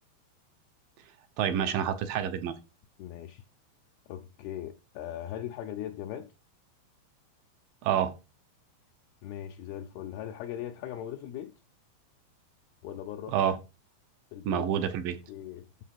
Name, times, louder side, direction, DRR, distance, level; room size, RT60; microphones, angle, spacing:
voice 1, 1.4-2.5 7.8-8.1 13.3-13.6 14.5-15.2, right 9 dB, 70° right, 2.2 m, -28 dB
voice 2, 3.0-3.4 4.1-6.3 9.2-11.5 12.8-13.3 14.3-14.6 15.3-15.7, left 11 dB, 75° left, 2.5 m, -39 dB
8.5 x 7.2 x 5.8 m
omnidirectional pair, 5.0 m